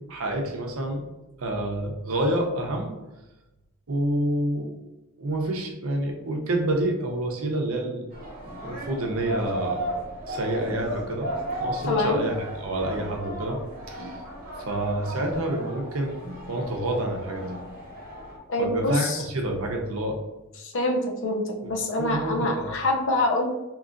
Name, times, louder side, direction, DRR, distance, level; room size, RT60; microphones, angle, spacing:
voice 1, 0.1-1.0 1.4-2.9 3.9-4.7 5.2-8.1 8.6-9.8 10.3-11.3 11.6-13.6 13.9-14.2 14.7-16.2 16.5-17.4 18.6-20.2 22.0-22.7, right 1 dB, 65° right, 1 dB, 0.7 m, -28 dB
sound 1, 8.1-18.4, right 1 dB, 40° right, 1.1 m, -35 dB
voice 2, 11.9-12.2 18.5-19.2 20.6-23.5, left 2 dB, 60° left, 1 dB, 0.6 m, -25 dB
3.8 x 2.9 x 2.5 m, 1.0 s
head